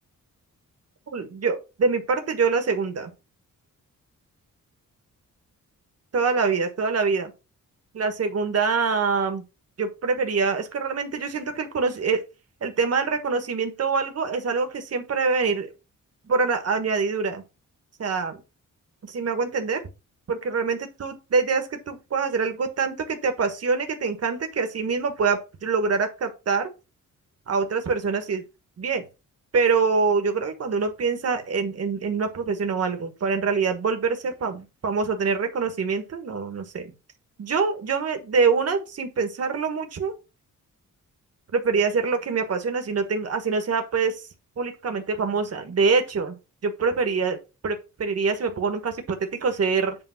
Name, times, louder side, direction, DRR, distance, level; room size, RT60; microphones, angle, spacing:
voice 1, 1.1-3.1 6.1-7.3 7.9-9.4 9.8-12.2 12.6-15.7 16.3-17.4 18.0-18.4 19.1-19.8 20.3-26.7 27.5-28.4 28.8-29.0 29.5-36.9 37.4-40.1 41.5-44.2 44.6-46.3 46.6-47.4 47.6-50.0, right 5 dB, 45° right, 1.4 m, -25 dB
7.9 x 3.5 x 5.8 m
wide cardioid pair, 150°, 33 cm